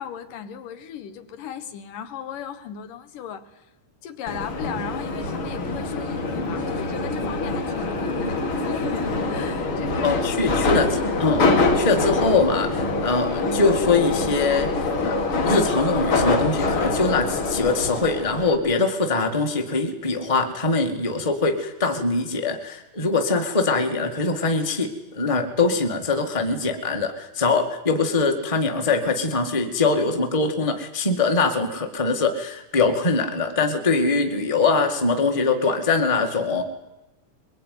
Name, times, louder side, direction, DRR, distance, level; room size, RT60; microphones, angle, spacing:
voice 1, 0.0-3.7 4.0-11.5 28.9-29.0, left 9 dB, 90° left, 10 dB, 3.1 m, -37 dB
Subway metro underground, 4.3-18.6, left 3 dB, 40° left, 2.9 m, -24 dB
voice 2, 10.0-36.6, left 3 dB, 15° left, 6 dB, 1.4 m, -23 dB
22.5 x 21.5 x 9.6 m, 0.98 s
omnidirectional pair, 3.7 m